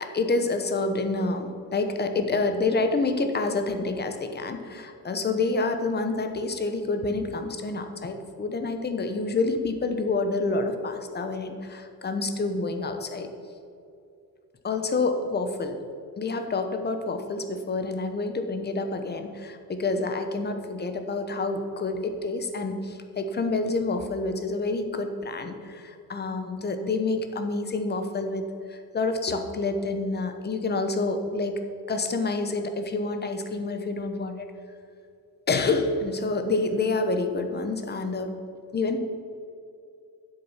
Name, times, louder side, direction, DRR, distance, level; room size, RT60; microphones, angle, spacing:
voice 1, 0.0-13.3 14.6-15.8 16.2-31.6 31.9-34.5 35.5-38.3 38.7-39.0, left 3 dB, 25° left, 7 dB, 1.0 m, -28 dB
10.0 x 7.8 x 5.7 m, 2.5 s
cardioid pair, 135°, 37 cm